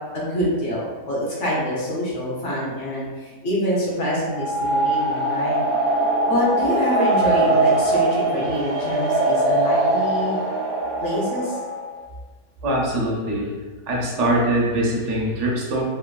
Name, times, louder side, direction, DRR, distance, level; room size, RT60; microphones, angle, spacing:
voice 1, 0.1-5.6 6.2-10.4 11.0-11.6, equal, 60° left, -7 dB, 1.1 m, -25 dB
sound 1, 4.2-11.9, right 2 dB, 85° right, 1.1 m, -21 dB
voice 2, 12.6-13.5 13.9-15.8, right 1 dB, 60° right, -3 dB, 0.9 m, -22 dB
3.2 x 2.5 x 2.2 m, 1.4 s
omnidirectional pair, 1.5 m